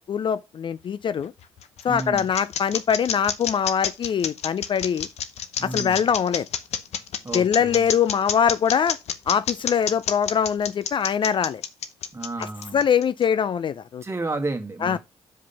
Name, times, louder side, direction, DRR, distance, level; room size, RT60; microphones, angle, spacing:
voice 1, 0.0-1.3 1.8-5.1 5.6-6.5 7.3-9.0 9.3-11.6 12.7-14.0 14.8-15.0, left 7 dB, 45° left, 0.4 m, -23 dB
sound 1, 1.2-13.2, left 8 dB, 70° left, 0.8 m, -29 dB
voice 2, 1.9-2.3 5.6-6.1 7.2-7.9 12.1-12.8 14.0-15.0, right 2 dB, 25° right, 1.8 m, -32 dB
5.8 x 5.0 x 5.5 m
supercardioid pair, 70°, 12 cm